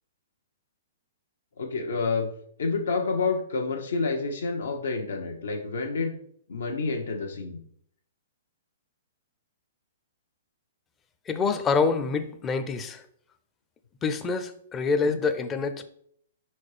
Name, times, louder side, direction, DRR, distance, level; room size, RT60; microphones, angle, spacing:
voice 1, 1.6-2.3 2.6-6.2 6.5-7.6 15.0-15.2, left 4 dB, 85° left, 2 dB, 1.0 m, -29 dB
voice 2, 11.3-13.0 14.0-15.8, left 4 dB, 15° left, 8 dB, 0.4 m, -26 dB
4.6 x 4.3 x 4.9 m, 0.67 s
hypercardioid pair, 160°, 0 cm